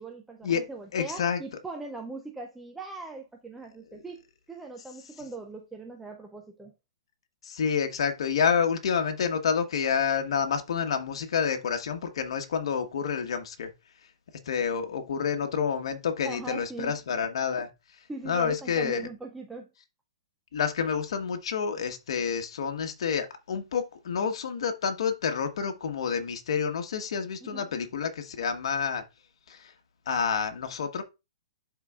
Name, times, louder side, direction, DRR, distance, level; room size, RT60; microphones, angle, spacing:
voice 1, 0.0-6.7 16.2-16.9 18.1-19.7 27.4-27.7, right 3 dB, 5° right, 0.4 m, -40 dB
voice 2, 0.9-1.4 3.9-4.0 7.4-13.7 14.4-17.7 18.2-19.1 20.5-29.0 29.5-29.7 30.1-31.0, left 6 dB, 60° left, 1.2 m, -28 dB
11.5 x 3.9 x 2.4 m
hypercardioid pair, 165°, 3 cm